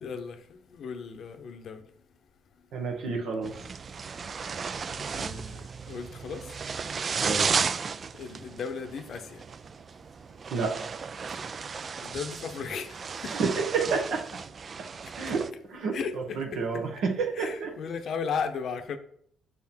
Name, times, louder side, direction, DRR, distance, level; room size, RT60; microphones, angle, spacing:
voice 1, 0.0-1.8 4.5-4.6 5.1-6.4 7.2-7.6 8.2-9.4 12.0-13.0 13.2-13.3 15.9-16.8 17.3-19.0, left 6 dB, 60° left, 0.7 m, -36 dB
voice 2, 2.7-3.5 7.2-7.5 10.5-10.7 13.3-14.2 15.2-17.7, right 4 dB, 70° right, 1.1 m, -29 dB
sound 1, 3.4-15.5, right 5 dB, 45° right, 0.3 m, -34 dB
5.7 x 3.7 x 4.4 m
supercardioid pair, 65°, 0 cm